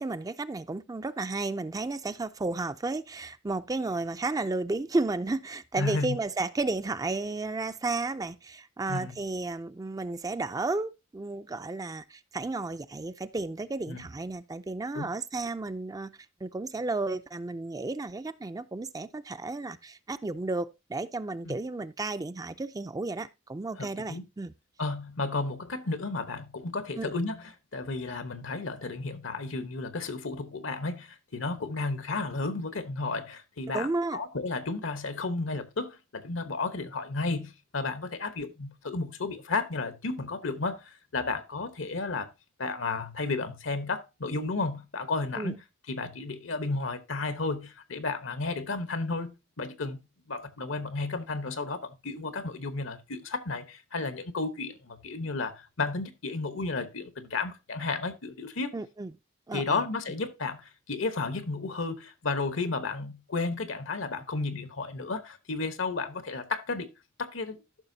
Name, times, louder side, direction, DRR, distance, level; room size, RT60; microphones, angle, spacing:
voice 1, 0.0-24.5 27.0-27.1 33.7-34.2 45.4-45.5 58.7-59.1 59.5-59.8, right 3 dB, 20° right, 0.4 m, -33 dB
voice 2, 5.8-6.2 8.9-9.2 13.9-14.0 14.9-15.1 21.4-21.6 23.8-24.2 24.8-42.3 42.6-50.0 50.3-58.7 59.5-66.9 67.2-67.6, left 3 dB, 75° left, 1.1 m, -33 dB
14.0 x 5.9 x 2.7 m
head